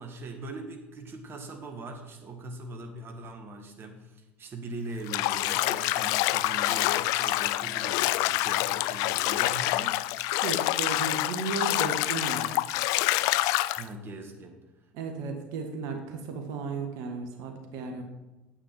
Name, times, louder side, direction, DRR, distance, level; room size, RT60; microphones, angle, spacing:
voice 1, 0.0-10.0 13.7-14.6 15.2-15.4, right 2 dB, 40° right, 4 dB, 1.6 m, -41 dB
Bathtub (filling or washing), 5.1-13.8, left 17 dB, 65° left, 0.4 m, -27 dB
voice 2, 10.4-12.5 14.9-18.0, right 4 dB, 65° right, 4 dB, 1.6 m, -34 dB
8.9 x 8.7 x 4.7 m, 1.1 s
hypercardioid pair, 70°, 6 cm